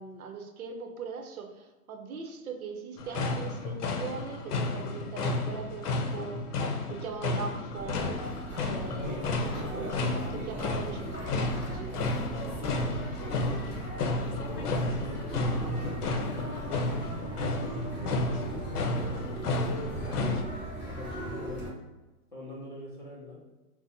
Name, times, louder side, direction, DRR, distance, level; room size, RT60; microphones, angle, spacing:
voice 1, 0.0-6.4 6.9-8.3 8.6-11.9, right 5 dB, 70° right, 4 dB, 0.7 m, -41 dB
sound 1, 3.0-20.4, left 2 dB, 85° left, 0.7 m, -32 dB
sound 2, 7.7-21.7, right 1 dB, 5° right, 1.2 m, -38 dB
voice 2, 8.6-10.0 10.3-11.4 12.4-13.9 14.5-16.9 17.9-20.5 20.9-21.7 22.3-23.4, left 1 dB, 35° left, -4 dB, 0.4 m, -43 dB
4.0 x 2.1 x 2.6 m, 1.1 s
hypercardioid pair, 180°, 45 cm